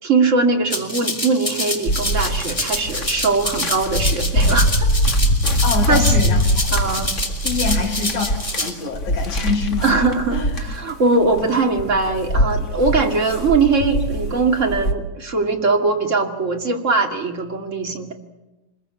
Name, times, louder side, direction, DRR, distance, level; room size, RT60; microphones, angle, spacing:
voice 1, 0.0-4.9 5.9-6.1 6.7-7.1 9.8-18.1, right 3 dB, 25° right, 2 dB, 2.4 m, -20 dB
Rattle (instrument), 0.7-8.7, left 1 dB, 10° left, 2.8 m, -26 dB
sound 1, 1.9-14.9, equal, 30° left, 1.6 m, -22 dB
voice 2, 5.6-6.4 7.4-9.9 10.3-10.7, left 4 dB, 75° left, -3 dB, 5.0 m, -25 dB
26.0 x 21.5 x 8.5 m, 1.0 s
omnidirectional pair, 3.6 m